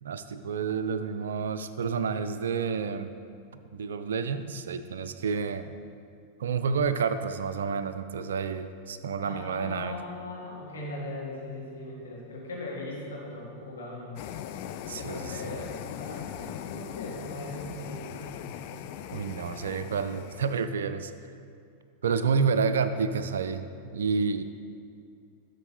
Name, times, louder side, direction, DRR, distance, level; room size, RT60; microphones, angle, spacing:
voice 1, 0.0-3.1 3.7-5.7 6.4-9.9 14.9-15.6 19.1-21.1 22.0-24.4, right 5 dB, 65° right, 10 dB, 0.4 m, -29 dB
voice 2, 9.2-14.2 15.0-18.4, left 2 dB, 70° left, -4 dB, 2.0 m, -39 dB
sound 1, 14.2-20.7, left 10 dB, 45° left, 0.4 m, -40 dB
11.5 x 6.5 x 3.2 m, 2.5 s
figure-of-eight pair, 90°, 0 cm